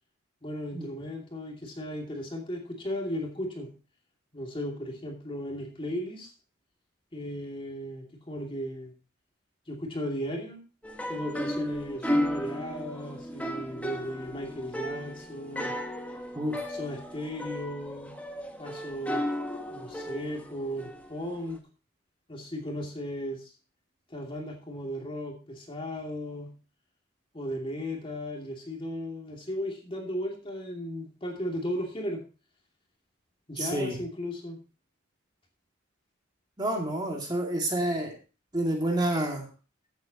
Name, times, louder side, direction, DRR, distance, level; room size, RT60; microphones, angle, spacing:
voice 1, 0.4-3.7 4.3-6.3 7.1-8.9 9.7-10.6 11.1-15.7 16.7-18.2 18.6-19.2 19.7-21.6 22.3-23.5 24.1-26.6 27.3-32.2 33.5-34.6, equal, 25° left, 1 dB, 2.6 m, -36 dB
sound 1, 10.8-21.6, left 1 dB, 5° left, 1.3 m, -34 dB
voice 2, 33.6-34.0 36.6-38.1 38.5-39.4, right 1 dB, 20° right, 0 dB, 2.3 m, -29 dB
15.0 x 8.1 x 3.0 m, 0.33 s
head